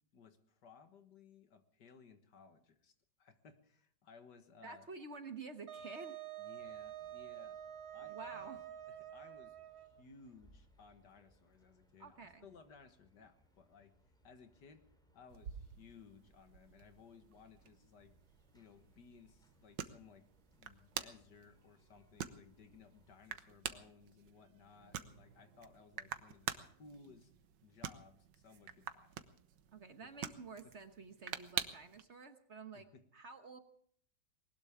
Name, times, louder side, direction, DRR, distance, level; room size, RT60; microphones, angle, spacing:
voice 1, 0.1-2.9 3.2-4.9 6.4-7.6 7.9-8.6 8.9-13.9 14.2-14.8 15.1-18.1 18.5-26.5 26.8-27.3 27.6-29.2 30.0-30.1 32.7-33.0, left 5 dB, 70° left, 8 dB, 2.1 m, -60 dB
voice 2, 4.6-6.2 8.0-8.6 12.0-12.5 29.7-32.9 33.1-33.6, right 4 dB, 45° right, 8 dB, 1.3 m, -50 dB
Wind instrument woodwind instrument, 5.7-10.0, right 12 dB, 60° right, 1.8 m, -48 dB
sound 1, 6.6-23.3, equal, ahead, 3.7 m, -72 dB
sound 2, 15.3-32.0, right 9 dB, 85° right, 1.6 m, -48 dB
20.5 x 19.0 x 3.7 m, 0.62 s
omnidirectional pair, 1.9 m